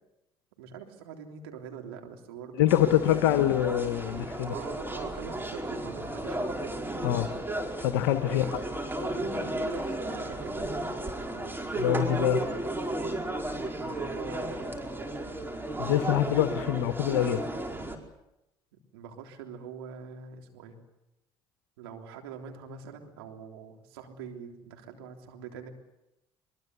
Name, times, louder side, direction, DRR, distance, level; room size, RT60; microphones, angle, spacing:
voice 1, 0.6-3.3 4.5-6.8 8.3-8.6 9.0-10.7 13.8-14.9 18.9-20.8 21.8-25.7, right 7 dB, 85° right, 3 dB, 3.5 m, -44 dB
voice 2, 2.6-4.5 7.0-7.3 7.8-8.4 11.8-12.4 15.8-17.4, left 12 dB, 85° left, 9 dB, 1.1 m, -25 dB
sound 1, 2.7-18.0, right 1 dB, 15° right, 4.8 m, -34 dB
23.0 x 23.0 x 8.2 m, 0.88 s
hypercardioid pair, 65°, 12 cm